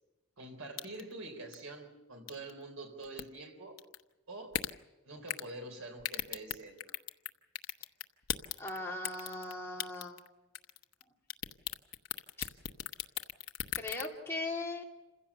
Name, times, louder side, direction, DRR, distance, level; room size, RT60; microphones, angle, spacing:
voice 1, 0.4-3.8 4.3-4.6 5.0-7.0, right 2 dB, 80° right, 5 dB, 3.8 m, -46 dB
sound 1, 0.8-1.1 1.5-1.6 2.3-2.5 3.0-3.2 3.8-4.0 4.5-4.7 5.3-5.5 6.0-7.3 7.6-8.8 9.0-9.5 9.8-10.3 10.5-11.0 11.3-14.1, left 10 dB, 80° left, 0.9 m, -36 dB
voice 2, 8.6-10.2 12.4-12.5 13.7-14.8, left 2 dB, 10° left, -2 dB, 3.0 m, -39 dB
27.5 x 16.0 x 7.1 m, 1.1 s
head